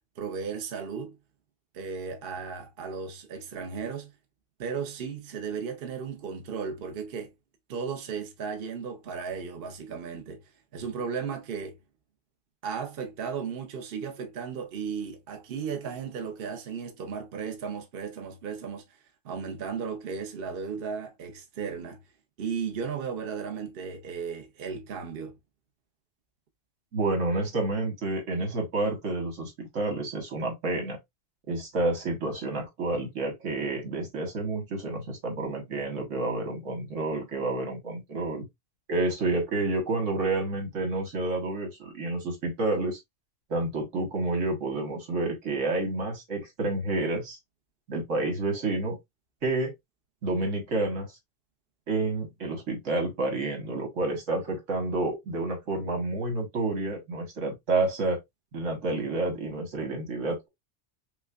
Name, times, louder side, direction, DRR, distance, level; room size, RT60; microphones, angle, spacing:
voice 1, 0.2-1.2 1.7-4.1 4.6-7.3 7.7-10.4 10.7-11.8 12.6-18.8 19.2-22.0 22.4-25.3, right 6 dB, 55° right, 0.9 m, -35 dB
voice 2, 26.9-31.0 31.5-38.5 38.9-43.0 43.5-47.4 47.9-49.0 49.4-49.7 50.2-51.1 51.9-58.2 58.5-60.5, right 2 dB, 90° right, 1.7 m, -29 dB
5.7 x 2.1 x 2.3 m
omnidirectional pair, 1.3 m